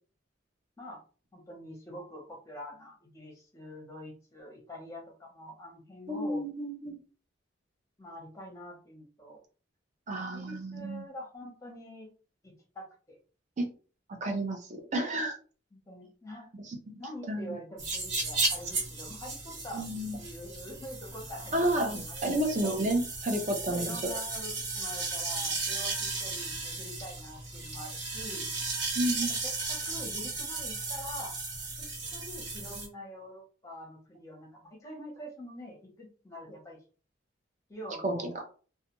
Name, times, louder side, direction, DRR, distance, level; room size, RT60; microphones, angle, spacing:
voice 1, 1.3-6.4 8.0-9.4 10.3-12.1 12.4-13.2 15.7-16.5 17.0-22.8 23.7-28.5 29.4-31.3 31.8-36.8 37.7-38.3, left 1 dB, 15° left, 0 dB, 0.8 m, -45 dB
voice 2, 6.1-7.0 10.1-11.1 13.6-13.7 14.2-15.3 16.7-17.0 17.3-17.6 19.7-20.2 21.5-23.8 28.9-29.4 38.0-38.2, right 1 dB, 40° right, 2 dB, 0.6 m, -31 dB
sound 1, 17.8-32.9, right 3 dB, 65° right, 1.3 m, -35 dB
2.3 x 2.2 x 2.9 m, 0.38 s
head